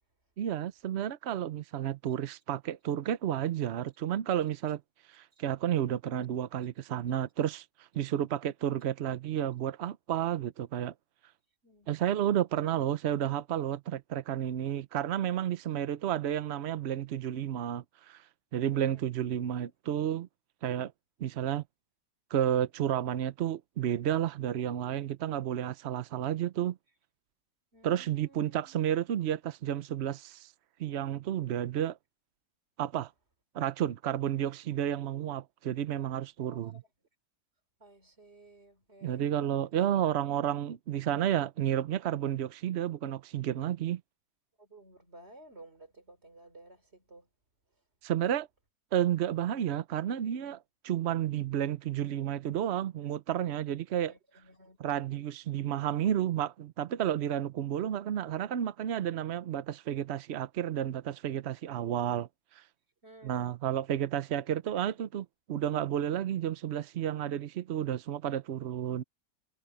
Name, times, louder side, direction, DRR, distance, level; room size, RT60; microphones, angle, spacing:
voice 1, 0.4-4.8 5.1-10.9 11.9-18.2 18.5-20.3 20.6-20.9 21.2-21.6 22.3-26.8 27.8-30.5 30.8-32.0 32.8-33.1 33.5-36.8 39.0-44.0 48.0-48.5 48.9-54.1 54.8-62.6 63.2-69.0, right 10 dB, 70° right, 0.6 m, -31 dB
voice 2, 18.6-19.1 27.7-28.7 36.4-36.8 37.8-39.4 44.6-47.3 54.1-54.8 63.0-63.6, right 1 dB, 35° right, 3.7 m, -55 dB
omnidirectional pair, 1.9 m